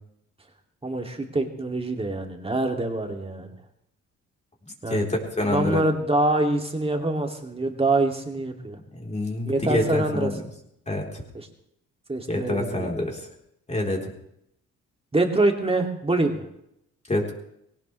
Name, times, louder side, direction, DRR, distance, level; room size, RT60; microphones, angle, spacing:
voice 1, 0.8-3.5 4.8-5.1 5.4-8.8 9.5-10.3 11.3-11.5 12.1-12.9 15.1-16.4, right 2 dB, 20° right, 3 dB, 2.6 m, -25 dB
voice 2, 4.9-5.8 8.9-10.4 10.9-11.2 12.3-13.2 13.7-14.1 17.1-17.3, left 1 dB, 20° left, 0 dB, 4.0 m, -26 dB
20.0 x 18.0 x 3.4 m, 0.76 s
cardioid pair, 90°, 30 cm